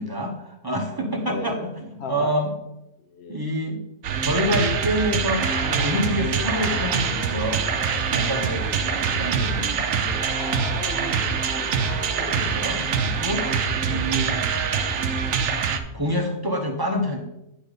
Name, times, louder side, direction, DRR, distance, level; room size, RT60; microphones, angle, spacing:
voice 1, 0.0-1.7 2.1-2.5 3.3-3.8 4.2-7.7 8.1-8.7 9.2-9.7 12.3-14.4 15.9-17.2, equal, 20° right, 1 dB, 0.8 m, -27 dB
voice 2, 1.2-1.7 2.0-2.4 3.0-3.4 10.7-11.7 12.1-12.5 13.7-14.0, left 2 dB, 50° left, 6 dB, 1.1 m, -37 dB
sound 1, 4.0-15.8, right 6 dB, 65° right, 1.0 m, -24 dB
sound 2, 5.4-13.5, left 4 dB, 75° left, 1.3 m, -39 dB
10.0 x 4.1 x 5.0 m, 0.88 s
omnidirectional pair, 1.6 m